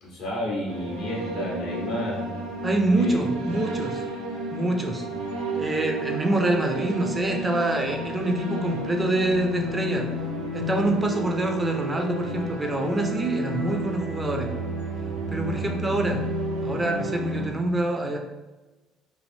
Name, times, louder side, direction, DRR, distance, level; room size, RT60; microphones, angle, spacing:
voice 1, 0.0-2.2 2.9-3.2, left 1 dB, 65° left, -4 dB, 1.2 m, -31 dB
sound 1, 0.7-17.5, equal, 90° right, 0.7 m, -31 dB
voice 2, 2.6-4.0 4.5-5.1 5.6-10.1 10.5-14.5 15.3-16.2 16.6-18.2, right 2 dB, 20° right, 3 dB, 0.5 m, -26 dB
3.2 x 2.5 x 2.7 m, 1.1 s
hypercardioid pair, 55°, 0 cm